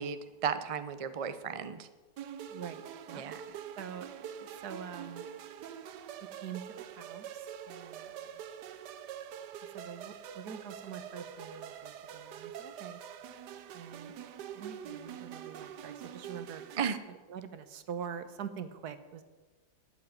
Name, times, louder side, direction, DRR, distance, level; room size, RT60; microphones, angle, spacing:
voice 1, 0.0-1.9 3.1-3.4 16.8-17.0, right 7 dB, 45° right, 11 dB, 0.4 m, -34 dB
sound 1, 2.2-16.9, right 9 dB, 90° right, 1.4 m, -45 dB
voice 2, 2.5-2.8 3.1-3.2 3.8-4.1 4.4-5.3 6.3-8.4 9.7-13.0 13.7-16.6 17.1-19.2, right 8 dB, 70° right, 11 dB, 1.5 m, -45 dB
12.0 x 8.4 x 9.5 m, 1.3 s
omnidirectional pair, 1.8 m